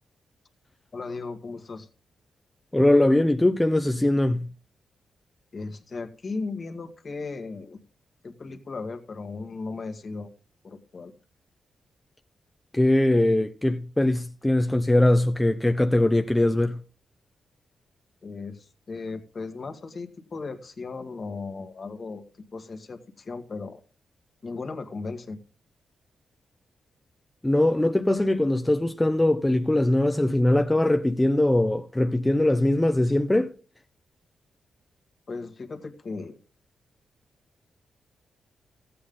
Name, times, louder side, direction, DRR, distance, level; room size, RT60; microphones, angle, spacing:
voice 1, 0.9-1.9 5.5-7.8 8.2-10.3 10.6-11.1 18.2-22.2 22.5-23.8 24.4-25.4 35.3-36.4, left 4 dB, 40° left, 1.6 m, -36 dB
voice 2, 2.7-4.5 12.7-16.8 27.4-33.5, left 1 dB, 10° left, 0.6 m, -21 dB
15.0 x 8.5 x 3.8 m
cardioid pair, 105°, 0 cm